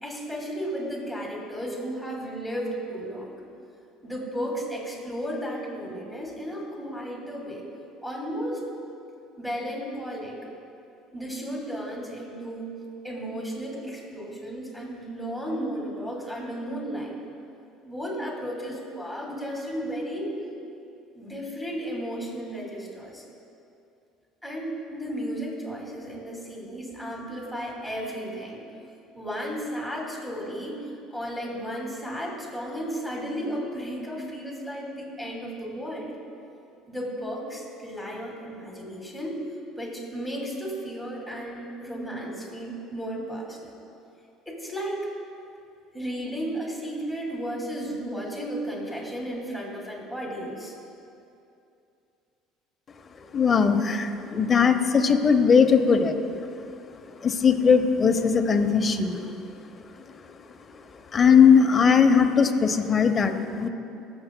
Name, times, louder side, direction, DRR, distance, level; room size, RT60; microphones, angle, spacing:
voice 1, 0.0-3.4 4.0-7.6 8.0-8.6 9.4-10.4 11.1-12.7 13.0-17.2 17.8-20.4 21.1-23.2 24.4-28.6 29.1-30.8 31.1-36.1 36.9-39.4 39.7-43.7 44.5-45.1 45.9-50.7, equal, ahead, -3 dB, 2.4 m, -34 dB
voice 2, 53.3-56.2 57.2-59.2 61.1-63.7, left 6 dB, 30° left, 6 dB, 0.8 m, -19 dB
20.5 x 6.9 x 2.2 m, 2.6 s
supercardioid pair, 90°, 0 cm